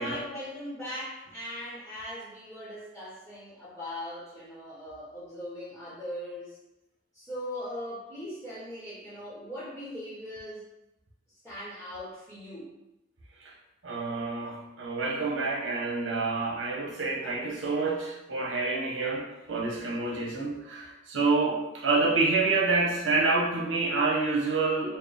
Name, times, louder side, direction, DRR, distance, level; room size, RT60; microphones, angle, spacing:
voice 1, 0.0-6.6 7.1-10.7 11.4-12.7, equal, 5° left, -9 dB, 1.0 m, -39 dB
voice 2, 13.8-25.0, right 3 dB, 90° right, -2 dB, 0.9 m, -28 dB
4.3 x 2.1 x 3.4 m, 0.93 s
head